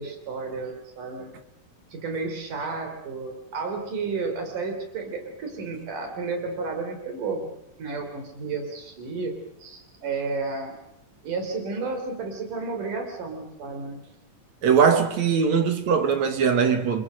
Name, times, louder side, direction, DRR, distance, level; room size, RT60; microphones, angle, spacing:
voice 1, 0.0-1.3 1.9-7.5 7.8-9.3 9.6-10.8 11.2-14.0, right 4 dB, 80° right, 5.2 m, -32 dB
voice 2, 14.6-17.0, right 6 dB, 65° right, 2.7 m, -21 dB
29.5 x 24.0 x 6.4 m
omnidirectional pair, 3.6 m